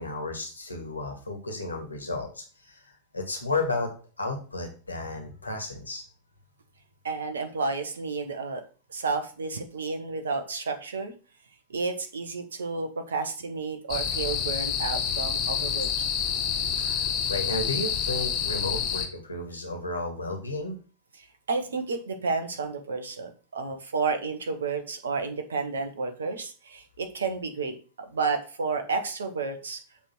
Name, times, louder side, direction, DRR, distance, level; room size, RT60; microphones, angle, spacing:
voice 1, 0.0-3.9 4.2-6.0 16.8-20.8, left 2 dB, 80° left, 3 dB, 2.0 m, -33 dB
voice 2, 7.0-8.6 8.9-11.1 11.7-15.9 21.5-29.8, right 4 dB, 70° right, 7 dB, 1.2 m, -31 dB
sound 1, 13.9-19.1, left 7 dB, 35° left, 1.4 m, -28 dB
7.3 x 3.6 x 6.2 m, 0.37 s
figure-of-eight pair, 90°, 0 cm